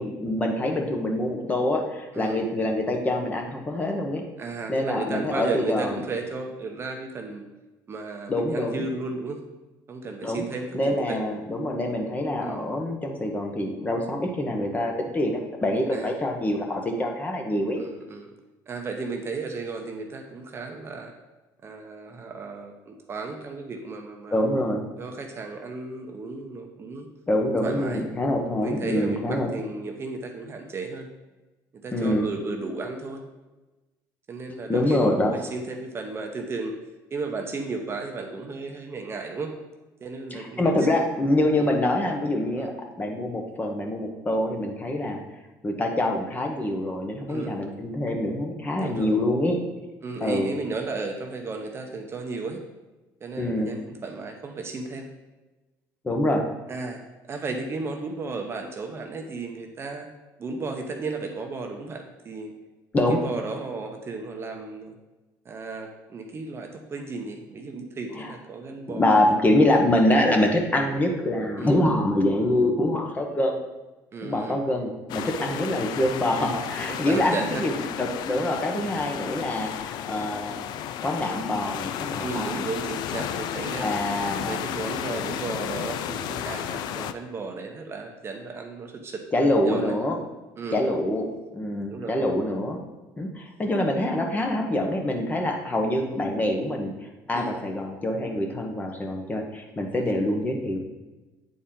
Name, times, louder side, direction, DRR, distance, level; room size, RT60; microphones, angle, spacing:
voice 1, 0.0-4.2 4.7-6.0 8.3-8.9 10.2-10.4 10.7-17.8 24.3-24.9 27.3-29.5 31.9-32.3 34.7-35.3 40.3-42.7 43.0-45.2 45.6-49.6 50.2-50.5 53.4-53.7 56.0-56.5 62.9-63.2 68.1-68.3 68.9-73.6 74.2-77.7 78.0-80.7 81.0-82.7 83.8-84.6 89.3-90.2 90.7-91.3 91.5-92.8 93.2-96.9 97.3-100.8, left 1 dB, 20° left, 2 dB, 1.0 m, -25 dB
voice 2, 4.4-7.4 7.9-9.4 9.9-11.2 12.4-12.6 15.9-16.2 17.8-18.3 18.7-21.1 21.6-24.4 25.0-27.1 27.6-28.0 28.6-31.1 31.7-33.2 34.3-36.8 37.1-39.5 40.0-40.7 41.6-41.7 42.6-42.7 47.3-47.6 48.8-49.1 50.0-52.6 53.2-55.1 56.7-57.0 57.3-60.1 60.4-62.5 63.1-64.9 65.4-69.5 71.6-71.8 74.1-74.6 75.5-75.6 76.8-77.7 80.1-80.3 82.2-83.9 84.4-90.0 90.6-90.8 91.8-92.2 97.3-97.6 100.0-100.2, right 3 dB, 30° right, 3 dB, 0.8 m, -34 dB
sound 1, 75.1-87.1, left 10 dB, 65° left, 0.4 m, -33 dB
8.4 x 4.2 x 3.8 m, 1.1 s
cardioid pair, 115°, 8 cm